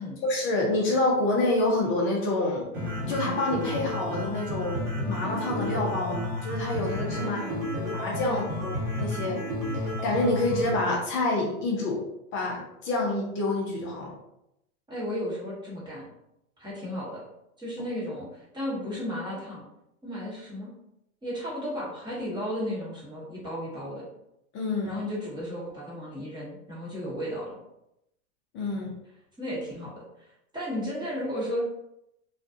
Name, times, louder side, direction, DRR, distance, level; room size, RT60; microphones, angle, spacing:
voice 1, 0.2-2.7 3.1-4.8 5.1-7.4 7.7-9.4 9.7-12.0 12.3-14.1 24.5-24.9 28.5-28.9, left 2 dB, 30° left, -3 dB, 0.6 m, -27 dB
sound 1, 2.7-10.7, left 1 dB, 55° right, 1.4 m, -31 dB
voice 2, 7.1-7.6 8.2-8.5 14.9-16.1 16.6-17.2 17.6-19.6 20.0-20.7 21.2-24.1 24.8-27.6 29.4-29.9 30.5-31.6, equal, 10° right, -7 dB, 1.0 m, -34 dB
2.4 x 2.3 x 2.6 m, 0.83 s
hypercardioid pair, 120°, 44 cm